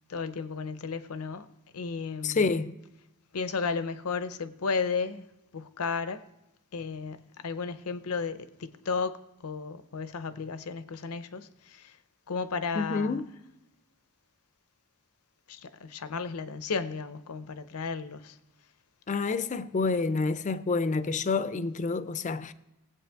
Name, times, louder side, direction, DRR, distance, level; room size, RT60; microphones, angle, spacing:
voice 1, 0.1-1.5 1.7-2.5 3.3-5.3 5.5-6.2 6.7-9.2 9.4-11.9 12.3-13.2 15.5-18.3, left 5 dB, 80° left, 0.7 m, -34 dB
voice 2, 2.2-2.8 12.7-13.3 19.1-22.5, left 4 dB, 35° left, 0.4 m, -28 dB
19.0 x 8.3 x 3.4 m
head